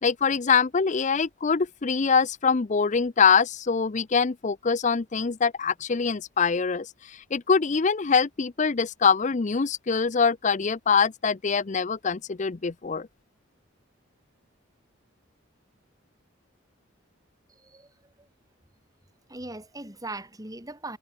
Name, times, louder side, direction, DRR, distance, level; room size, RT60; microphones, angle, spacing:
voice 1, 0.0-13.1, left 5 dB, 35° left, 0.5 m, -24 dB
voice 2, 17.5-18.3 19.3-21.0, right 2 dB, 20° right, 4.2 m, -40 dB
head